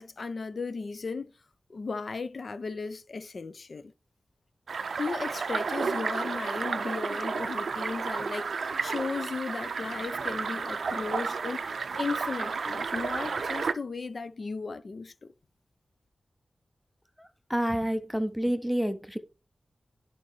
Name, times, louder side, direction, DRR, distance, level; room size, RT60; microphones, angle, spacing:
voice 1, 0.0-1.3 1.7-3.9 5.0-15.3, left 4 dB, 55° left, 0.5 m, -36 dB
sound 1, 4.7-13.7, right 5 dB, 75° right, 0.4 m, -32 dB
voice 2, 17.2-19.2, equal, ahead, 0.5 m, -29 dB
11.0 x 4.3 x 3.1 m
wide cardioid pair, 120°, 0 cm